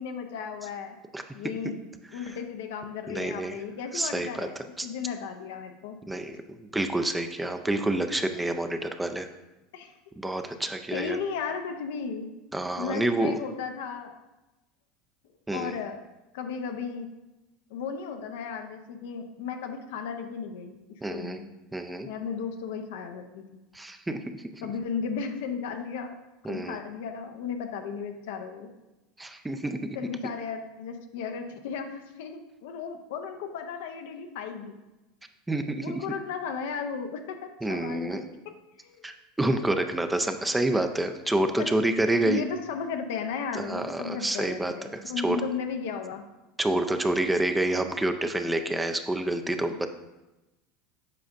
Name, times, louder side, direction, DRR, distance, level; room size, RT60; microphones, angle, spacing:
voice 1, 0.0-1.0 1.3-6.0 9.7-10.0 10.4-10.6 10.9-12.3 12.8-14.2 15.5-16.0 16.3-17.1 17.7-20.8 21.1-21.4 22.0-23.4 24.6-26.2 26.5-28.7 29.9-34.8 35.8-38.5 38.8-39.0 41.6-41.7 42.2-46.2 49.7-49.9, left 6 dB, 75° left, 6 dB, 0.6 m, -35 dB
voice 2, 3.1-3.6 3.9-4.5 4.8-4.9 6.1-9.3 10.2-11.2 12.5-13.4 15.5-15.8 21.0-21.4 21.7-22.1 23.7-24.2 24.6-24.7 26.4-26.8 29.2-30.0 35.5-36.0 37.6-38.2 39.0-42.4 43.5-45.4 46.6-49.9, right 1 dB, 10° right, 7 dB, 0.5 m, -28 dB
7.5 x 5.0 x 2.6 m, 1.0 s
hypercardioid pair, 95°, 0 cm